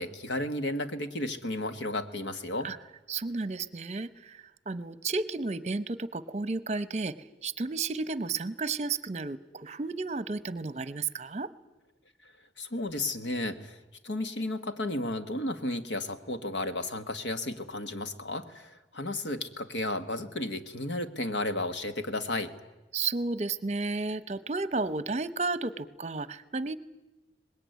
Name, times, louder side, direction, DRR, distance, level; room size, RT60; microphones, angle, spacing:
voice 1, 0.0-2.7 12.6-13.8 14.0-22.5, left 2 dB, 90° left, 9 dB, 1.6 m, -33 dB
voice 2, 3.1-7.1 7.4-11.5 22.9-26.8, right 3 dB, 35° right, 15 dB, 0.8 m, -32 dB
24.0 x 20.5 x 9.4 m, 1.0 s
head